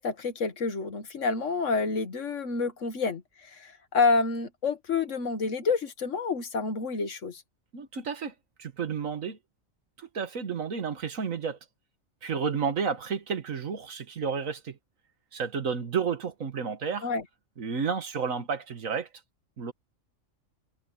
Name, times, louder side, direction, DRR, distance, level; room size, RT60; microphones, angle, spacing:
voice 1, 0.0-7.4 17.0-17.2, left 4 dB, 70° left, 1.8 m, -28 dB
voice 2, 7.7-8.3 8.6-9.4 10.0-11.6 12.2-14.8 15.3-17.1 17.6-19.1 19.6-19.7, right 6 dB, 85° right, 1.9 m, -31 dB
omnidirectional pair, 1.4 m